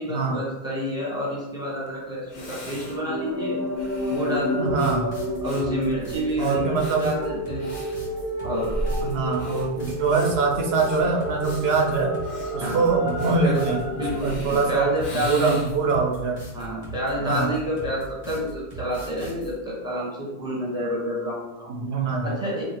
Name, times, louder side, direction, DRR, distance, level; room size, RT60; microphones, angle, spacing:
voice 1, 0.0-5.0 5.4-7.7 8.4-8.8 9.3-9.5 12.6-12.9 13.4-13.6 13.9-15.6 16.5-21.7 22.2-22.6, equal, 5° right, -6 dB, 1.1 m, -29 dB
Breathing, 1.9-2.0 2.3-15.9, equal, 50° left, 0.7 m, -38 dB
sound 1, 2.4-14.2, equal, 15° left, 0.8 m, -31 dB
sound 2, 4.6-19.5, right 2 dB, 90° left, 1.7 m, -39 dB
voice 2, 4.6-5.1 6.4-7.0 9.0-12.2 12.5-13.8 14.2-14.9 15.2-16.4 17.2-17.5 21.8-22.4, right 4 dB, 80° right, 1 dB, 0.8 m, -23 dB
2.8 x 2.7 x 4.3 m, 1.0 s
omnidirectional pair, 1.1 m